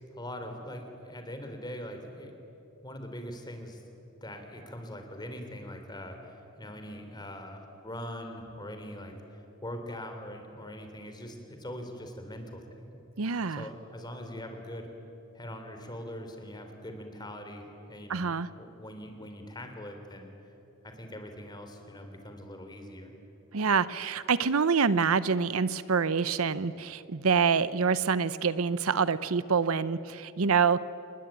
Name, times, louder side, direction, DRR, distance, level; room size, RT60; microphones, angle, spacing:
voice 1, 0.1-2.3 2.8-3.8 4.2-12.9 13.5-14.9 15.4-18.3 18.6-20.3 20.8-23.1, equal, 20° left, 5 dB, 3.5 m, -42 dB
voice 2, 13.2-13.6 18.1-18.5 23.5-30.8, right 5 dB, 80° right, 16 dB, 0.7 m, -26 dB
28.5 x 21.0 x 9.1 m, 2.9 s
head